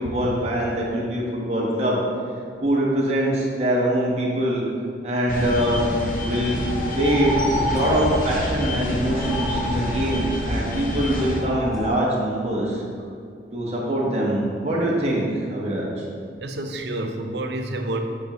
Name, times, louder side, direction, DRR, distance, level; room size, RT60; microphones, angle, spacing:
voice 1, 0.0-2.0 2.6-4.6 5.0-5.8 6.2-6.6 6.9-12.8 13.5-15.9, right 1 dB, 35° right, -5 dB, 1.2 m, -23 dB
sound 1, 5.3-11.4, left 1 dB, 50° left, 0.7 m, -28 dB
sound 2, 6.5-11.9, equal, ahead, 0.8 m, -30 dB
voice 2, 16.4-18.0, right 1 dB, 70° right, 5 dB, 0.6 m, -29 dB
8.0 x 5.3 x 3.0 m, 2.2 s
head